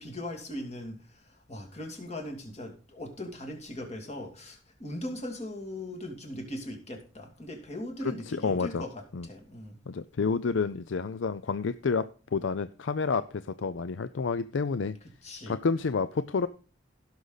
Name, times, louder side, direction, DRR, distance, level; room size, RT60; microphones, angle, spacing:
voice 1, 0.0-9.8 15.2-15.6, left 1 dB, 35° left, 3 dB, 2.5 m, -39 dB
voice 2, 8.3-8.8 9.1-9.3 9.9-15.0 15.5-16.5, left 5 dB, 70° left, 13 dB, 0.5 m, -29 dB
16.5 x 6.5 x 4.0 m, 0.38 s
head